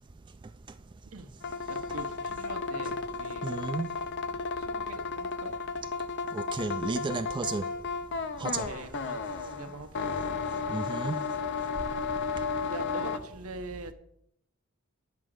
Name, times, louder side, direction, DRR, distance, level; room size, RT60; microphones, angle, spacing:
sound 1, 1.4-13.2, left 4 dB, 55° left, 0.6 m, -33 dB
voice 1, 1.7-3.5 4.6-5.5 8.2-10.3 12.7-13.9, right 2 dB, 80° right, 1.0 m, -43 dB
voice 2, 3.4-3.9 6.3-7.6 8.4-8.7 10.7-11.2, right 3 dB, 20° right, 0.3 m, -32 dB
9.6 x 4.9 x 7.7 m
head